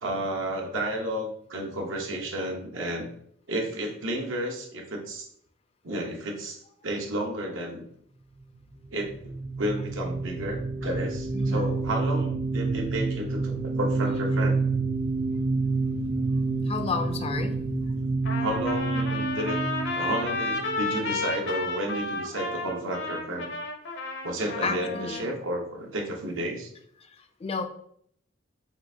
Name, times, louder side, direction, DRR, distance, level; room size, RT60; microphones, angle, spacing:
voice 1, 0.0-3.1 3.5-5.3 5.8-7.9 8.9-9.3 9.6-14.6 18.4-19.6 20.0-23.5 24.2-26.7, right 1 dB, 80° right, 1 dB, 0.9 m, -32 dB
sound 1, 9.0-21.4, right 3 dB, 40° right, 0.4 m, -28 dB
voice 2, 11.3-11.7 16.7-17.6 24.6-25.3 27.0-27.6, left 4 dB, 30° left, 6 dB, 0.4 m, -32 dB
Trumpet, 18.3-25.3, left 3 dB, 60° left, 0.7 m, -32 dB
5.5 x 2.5 x 2.7 m, 0.65 s
head